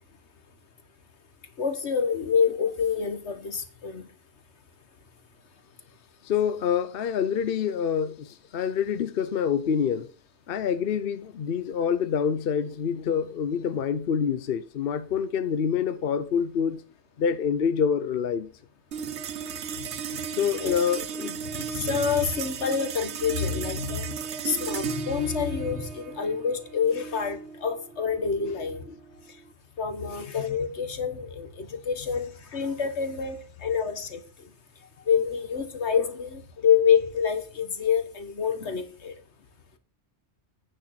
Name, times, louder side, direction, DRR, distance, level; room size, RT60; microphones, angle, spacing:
voice 1, 1.6-4.0 19.8-19.9 20.6-20.8 21.5-24.2 24.4-28.8 29.8-34.2 35.1-39.1, left 7 dB, 85° left, 1.7 m, -27 dB
voice 2, 6.2-10.1 10.5-16.8 17.2-18.5 20.4-21.4 30.1-30.2, left 7 dB, 60° left, 0.9 m, -26 dB
sound 1, 18.9-29.5, right 7 dB, 90° right, 1.1 m, -35 dB
9.3 x 6.3 x 5.8 m
omnidirectional pair, 1.1 m